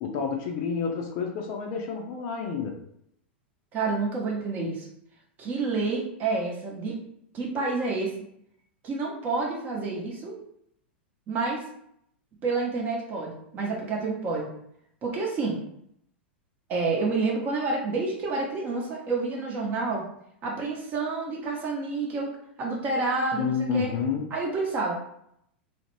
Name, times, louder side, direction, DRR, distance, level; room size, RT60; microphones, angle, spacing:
voice 1, 0.0-2.8 23.4-24.3, left 5 dB, 40° left, 2 dB, 0.5 m, -29 dB
voice 2, 3.7-4.9 5.4-7.0 7.3-8.1 8.8-10.3 11.3-11.6 12.4-14.5 15.0-15.6 16.7-20.0 20.4-22.3 22.6-23.9 24.3-24.9, right 3 dB, 30° right, -1 dB, 0.8 m, -29 dB
2.4 x 2.1 x 3.1 m, 0.72 s
figure-of-eight pair, 90°, 6 cm